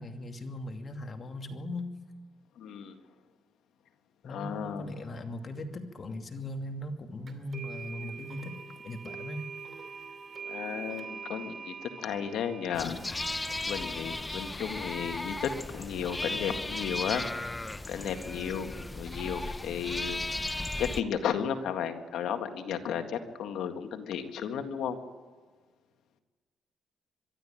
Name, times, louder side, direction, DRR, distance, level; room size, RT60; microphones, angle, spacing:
voice 1, 0.0-1.9 4.2-8.6 8.8-9.4, left 1 dB, 40° left, 5 dB, 2.5 m, -39 dB
voice 2, 2.6-2.9 4.2-4.9 10.4-13.3 13.7-17.5 17.9-20.2 20.8-25.0, left 8 dB, 80° left, 7 dB, 1.9 m, -34 dB
sound 1, 7.3-16.1, right 5 dB, 40° right, 2.7 m, -45 dB
sound 2, 12.7-21.0, left 2 dB, 15° left, 0.9 m, -36 dB
23.0 x 13.0 x 9.1 m, 1.4 s
cardioid pair, 90°, 0 cm